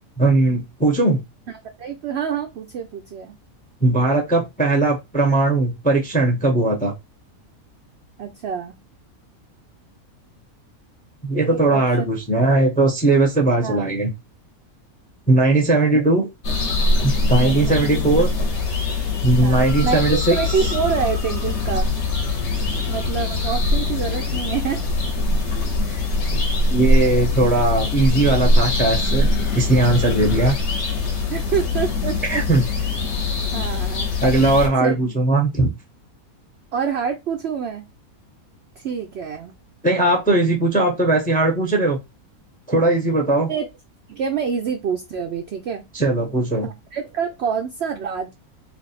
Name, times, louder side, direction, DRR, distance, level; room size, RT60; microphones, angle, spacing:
voice 1, 0.2-1.2 3.8-6.9 11.2-14.1 15.3-16.3 17.0-18.3 19.2-20.4 26.3-26.4 26.7-29.3 29.5-30.5 32.3-32.6 34.2-35.7 39.8-42.0 42.7-43.5 45.9-46.7, right 2 dB, 10° left, 1 dB, 0.6 m, -18 dB
voice 2, 1.8-3.4 8.2-8.7 11.5-12.1 13.6-13.9 17.4-17.8 19.4-21.9 22.9-24.8 25.8-26.1 31.3-32.4 33.5-34.2 34.8-34.9 36.7-37.8 38.8-39.5 43.5-43.7 44.1-45.8 46.6-48.3, right 7 dB, 65° right, 5 dB, 0.6 m, -27 dB
sound 1, 16.4-34.7, left 2 dB, 55° left, 1.1 m, -22 dB
3.4 x 2.5 x 4.1 m, 0.22 s
omnidirectional pair, 1.5 m